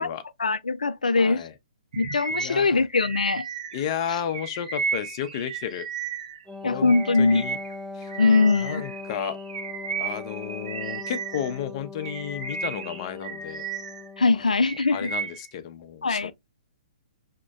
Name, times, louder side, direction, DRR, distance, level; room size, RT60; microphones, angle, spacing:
voice 1, 0.4-1.4 2.0-3.5 6.6-7.4 8.2-8.8 14.2-15.1 16.0-16.3, left 3 dB, 75° left, 0.4 m, -22 dB
voice 2, 1.1-1.5 2.3-2.8 3.7-5.9 6.6-6.9 7.2-7.6 7.9-8.1 8.6-9.4 10.0-13.6 14.3-14.4 14.9-16.3, left 9 dB, 40° left, 0.7 m, -32 dB
Bird vocalization bird call bird song, 1.9-6.4 6.8-11.6 12.0-14.1 14.4-15.5, right 5 dB, 65° right, 1.1 m, -34 dB
Wind instrument woodwind instrument, 6.5-14.5, left 3 dB, ahead, 0.4 m, -40 dB
6.0 x 2.8 x 2.3 m
figure-of-eight pair, 120°, 4 cm